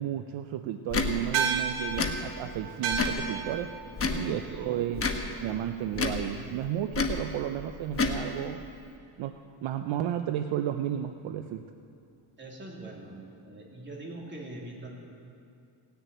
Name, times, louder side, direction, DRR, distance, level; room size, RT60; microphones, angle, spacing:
voice 1, 0.0-3.7 4.1-5.1 5.4-8.7 9.2-9.3 9.6-11.6, right 11 dB, 65° right, 8 dB, 0.7 m, -32 dB
Tick / Tick-tock, 0.9-1.1 1.9-2.1 2.9-3.2 3.9-4.2 4.9-5.2 5.9-6.2 6.9-7.2 7.9-8.2, left 4 dB, 25° left, 1.2 m, -28 dB
sound 1, 1.3-6.0, right 6 dB, 85° right, 1.6 m, -34 dB
voice 2, 3.8-4.8 12.4-15.0, right 2 dB, 20° right, -2 dB, 3.0 m, -43 dB
18.0 x 6.9 x 9.0 m, 2.4 s
cardioid pair, 130°, 49 cm